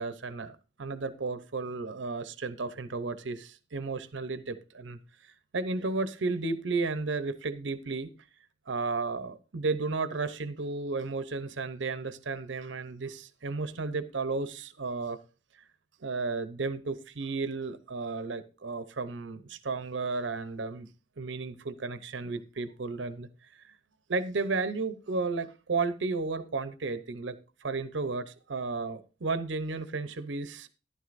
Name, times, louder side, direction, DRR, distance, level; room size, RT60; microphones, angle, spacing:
voice 1, 0.0-8.1 8.7-15.2 16.0-20.9 21.2-23.3 24.1-30.7, right 3 dB, 75° right, 0.7 m, -33 dB
12.5 x 11.0 x 2.5 m
head